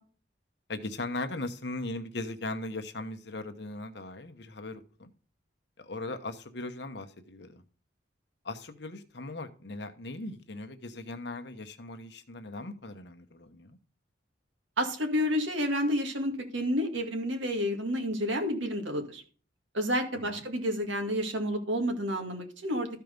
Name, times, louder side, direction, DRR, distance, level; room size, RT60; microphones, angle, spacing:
voice 1, 0.7-5.1 5.8-7.6 8.4-13.8 20.1-20.4, left 2 dB, 65° left, 1.0 m, -39 dB
voice 2, 14.8-19.2 19.7-22.9, equal, 90° right, 2.1 m, -30 dB
13.5 x 4.6 x 5.2 m
head